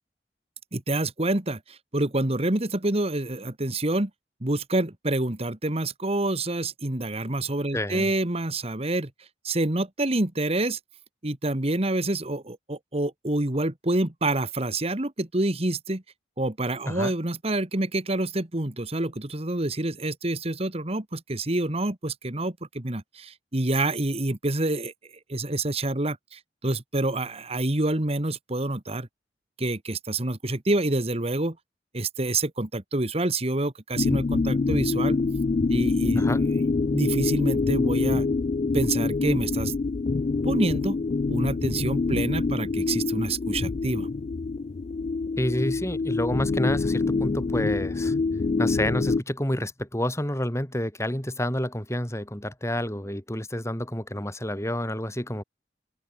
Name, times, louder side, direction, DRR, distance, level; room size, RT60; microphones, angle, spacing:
voice 1, 0.7-4.1 4.4-9.1 9.4-10.8 11.2-16.0 16.4-24.9 25.3-29.1 29.6-31.6 31.9-35.2 35.7-36.5 36.9-38.3 38.7-39.7 40.4-41.0 41.3-44.1, right 2 dB, 35° right, 1.7 m, -27 dB
voice 2, 7.7-8.1 16.9-17.1 36.1-36.4 45.4-48.1 48.6-55.4, left 1 dB, 15° left, 5.6 m, -29 dB
sound 1, 34.0-49.2, left 3 dB, 40° left, 0.4 m, -25 dB
open air
head